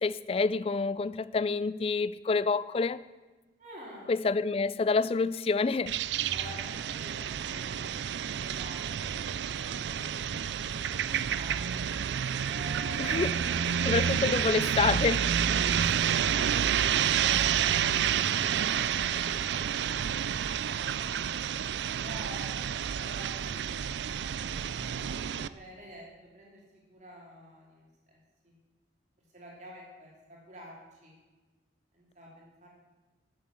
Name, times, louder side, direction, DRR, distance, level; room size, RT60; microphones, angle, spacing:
voice 1, 0.0-3.0 4.1-6.0 13.0-13.3 13.8-15.4, left 4 dB, 30° left, 0.3 m, -28 dB
voice 2, 3.6-4.1 6.3-11.7 12.4-13.8 15.5-22.5 23.0-23.6 24.3-26.1 26.3-26.6 26.9-28.2 28.4-28.5 29.3-30.8 31.0-31.1 31.9-32.7, equal, 40° right, 3.0 m, -49 dB
sound 1, 5.9-25.5, right 8 dB, 75° right, 0.4 m, -29 dB
10.5 x 7.6 x 7.3 m
head